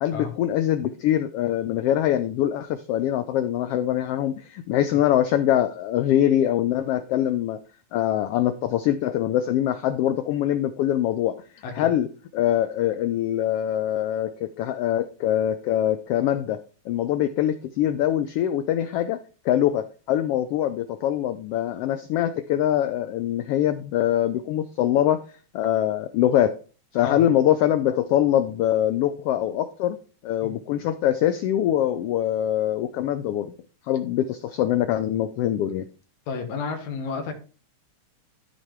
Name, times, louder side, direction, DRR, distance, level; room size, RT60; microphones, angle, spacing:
voice 1, 0.0-7.6 7.9-11.4 11.8-12.1 12.3-19.2 19.4-25.2 25.5-26.5 26.9-30.0 30.2-33.5 33.9-35.8, left 11 dB, 85° left, 10 dB, 1.3 m, -23 dB
voice 2, 36.3-37.3, left 5 dB, 70° left, 3 dB, 2.4 m, -31 dB
12.0 x 4.3 x 4.5 m, 0.36 s
omnidirectional pair, 3.3 m